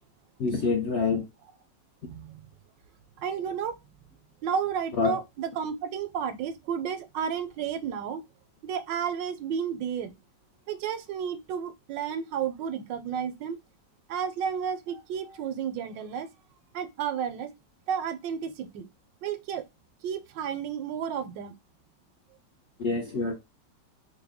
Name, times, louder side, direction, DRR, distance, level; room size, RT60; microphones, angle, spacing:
voice 1, 0.4-1.2 5.0-5.2 22.8-23.3, left 4 dB, 60° left, 0.7 m, -26 dB
voice 2, 2.0-2.5 3.2-3.7 4.4-8.2 8.6-10.1 10.7-13.6 14.1-16.3 16.7-17.5 17.9-18.9 19.2-19.6 20.0-21.5, right 7 dB, 85° right, 1.3 m, -32 dB
3.6 x 2.2 x 3.5 m
omnidirectional pair, 1.9 m